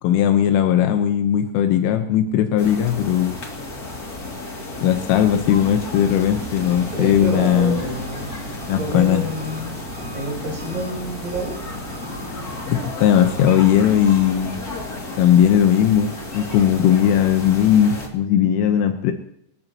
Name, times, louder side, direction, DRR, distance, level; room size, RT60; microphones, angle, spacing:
voice 1, 0.0-3.4 4.8-7.8 8.7-9.2 12.7-14.6 15.2-19.1, left 10 dB, 85° left, 6 dB, 3.7 m, -18 dB
sound 1, 2.6-18.1, left 2 dB, 30° left, 1.9 m, -33 dB
Engine, 5.9-12.7, right 5 dB, 60° right, 4.9 m, -40 dB
voice 2, 6.9-8.3 8.7-9.8 10.1-11.6, equal, 15° right, -3 dB, 4.5 m, -28 dB
27.0 x 13.5 x 3.0 m, 0.73 s
omnidirectional pair, 5.6 m